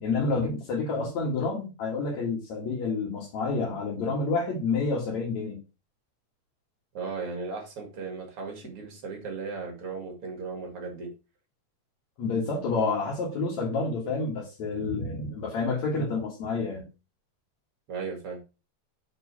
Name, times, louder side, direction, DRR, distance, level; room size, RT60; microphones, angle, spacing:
voice 1, 0.0-5.6 12.2-16.9, left 3 dB, 70° left, 3.1 m, -29 dB
voice 2, 6.9-11.1 17.9-18.4, right 4 dB, 50° right, 2.4 m, -36 dB
6.0 x 4.7 x 4.1 m
omnidirectional pair, 3.3 m